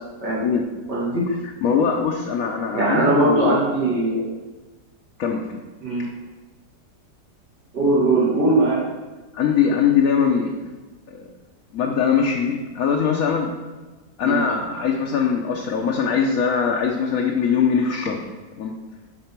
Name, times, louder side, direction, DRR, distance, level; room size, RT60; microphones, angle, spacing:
voice 1, 0.9-1.2 2.7-4.3 5.8-6.0 7.7-8.8 14.2-14.4, right 2 dB, 80° right, -8 dB, 3.0 m, -20 dB
voice 2, 1.6-3.6 5.2-5.5 9.3-10.5 11.1-11.3 11.7-13.5 14.2-18.2 18.6-18.7, left 6 dB, 60° left, 0 dB, 1.2 m, -21 dB
11.5 x 4.2 x 5.9 m, 1.2 s
omnidirectional pair, 1.8 m